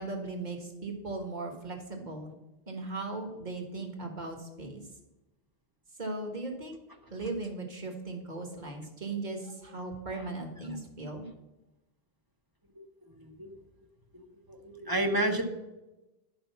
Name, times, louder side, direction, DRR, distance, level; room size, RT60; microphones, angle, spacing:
voice 1, 0.0-2.3 2.7-4.8 6.0-6.8 7.1-11.3, right 2 dB, 45° right, 3 dB, 1.6 m, -38 dB
voice 2, 13.1-13.5 14.1-14.2 14.5-15.4, right 1 dB, 20° right, 5 dB, 0.9 m, -31 dB
10.5 x 5.1 x 5.8 m, 1.0 s
omnidirectional pair, 1.0 m